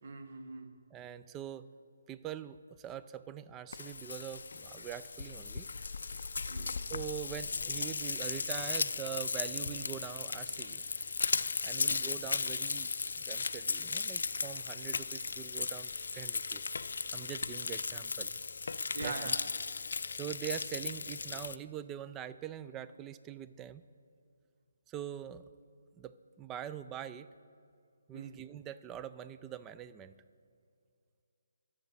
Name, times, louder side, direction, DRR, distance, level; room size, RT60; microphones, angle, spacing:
voice 1, 0.0-0.7 6.5-6.7 11.8-12.0 18.9-19.4 28.1-28.4, right 3 dB, 50° right, 6 dB, 1.1 m, -42 dB
voice 2, 0.9-1.7 2.1-5.7 6.9-10.8 11.6-12.9 13.2-16.7 17.1-18.3 19.0-19.4 20.1-23.8 24.9-25.5 26.0-27.3 28.1-30.1, right 10 dB, 15° right, 12 dB, 0.3 m, -43 dB
Frying (food), 3.7-21.6, left 4 dB, 65° left, 0.4 m, -36 dB
11.5 x 7.1 x 6.7 m, 2.3 s
figure-of-eight pair, 145°, 0 cm